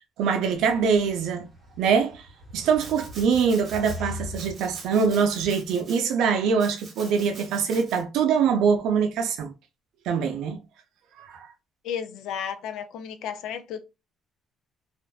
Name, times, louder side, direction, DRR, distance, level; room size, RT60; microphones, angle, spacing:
voice 1, 0.2-1.5 1.8-2.2 2.5-9.5 10.1-10.6 11.2-11.5, right 6 dB, 75° right, 0.5 m, -23 dB
sound 1, 0.5-5.7, left 1 dB, 10° right, 1.0 m, -42 dB
Domestic sounds home sounds, 2.8-4.0 4.3-6.0 6.6-8.0, right 3 dB, 30° right, 0.9 m, -45 dB
voice 2, 11.8-13.8, left 8 dB, 75° left, 0.4 m, -33 dB
2.5 x 2.2 x 2.3 m
cardioid pair, 170°, 0 cm